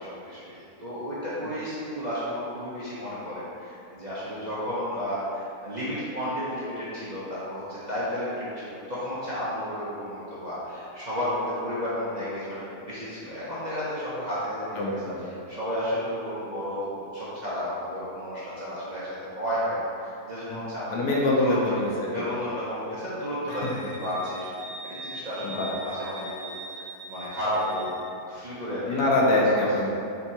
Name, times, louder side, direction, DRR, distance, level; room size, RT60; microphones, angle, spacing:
voice 1, 0.0-15.0 15.2-19.1 19.4-21.1 21.4-21.5 22.1-24.5 24.8-27.9 28.2-29.0 29.5-29.7, equal, 40° right, -11 dB, 0.6 m, -32 dB
voice 2, 14.8-15.2 20.5-20.6 20.9-22.3 23.5-23.7 25.4-25.7 28.9-29.9, left 2 dB, 75° left, -3 dB, 1.2 m, -24 dB
Wind instrument woodwind instrument, 23.5-28.0, right 2 dB, 70° right, 1.4 m, -41 dB
3.6 x 3.5 x 4.2 m, 2.6 s
omnidirectional pair, 1.7 m